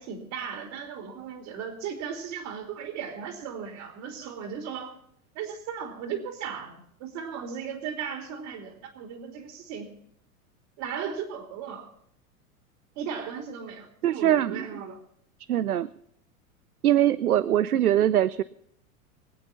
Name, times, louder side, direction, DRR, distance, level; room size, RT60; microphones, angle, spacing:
voice 1, 0.0-5.0 5.3-9.9 10.8-11.9 12.9-15.0, right 7 dB, 50° right, 3 dB, 3.0 m, -36 dB
voice 2, 14.0-14.6 15.5-15.9 16.8-18.4, right 11 dB, 90° right, 17 dB, 0.6 m, -22 dB
24.0 x 8.3 x 5.8 m, 0.70 s
hypercardioid pair, 95°, 43 cm